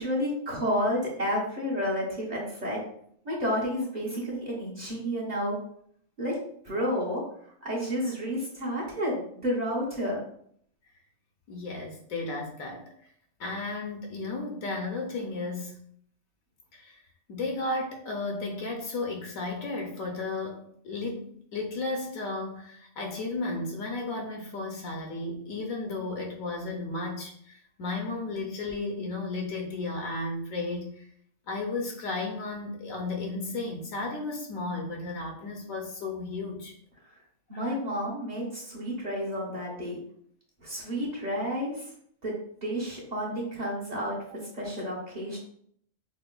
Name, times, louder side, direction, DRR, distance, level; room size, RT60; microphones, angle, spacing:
voice 1, 0.0-2.8 3.2-5.6 6.2-6.4 6.6-7.2 7.6-10.2 37.5-40.0 40.6-41.9 42.2-42.4 42.6-44.2 44.5-45.4, equal, 35° right, -5 dB, 0.9 m, -30 dB
voice 2, 11.5-12.9 13.4-15.8 16.7-17.0 17.3-31.1 31.5-36.7 37.5-37.7, left 3 dB, 75° left, 1 dB, 1.0 m, -34 dB
5.5 x 2.0 x 2.2 m, 0.65 s
omnidirectional pair, 1.5 m